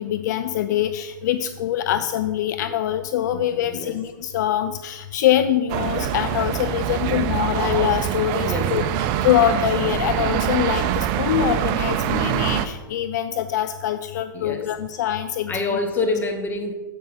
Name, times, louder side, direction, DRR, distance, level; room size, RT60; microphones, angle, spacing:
voice 1, 0.0-15.8, left 11 dB, 55° left, 10 dB, 0.4 m, -24 dB
voice 2, 3.3-4.0 7.1-7.4 8.4-8.7 14.3-14.7 15.5-16.7, left 3 dB, 15° left, 4 dB, 1.2 m, -27 dB
sound 1, 5.7-12.7, right 10 dB, 40° right, 0.5 m, -24 dB
7.7 x 5.4 x 5.2 m, 1.2 s
hypercardioid pair, 120°, 11 cm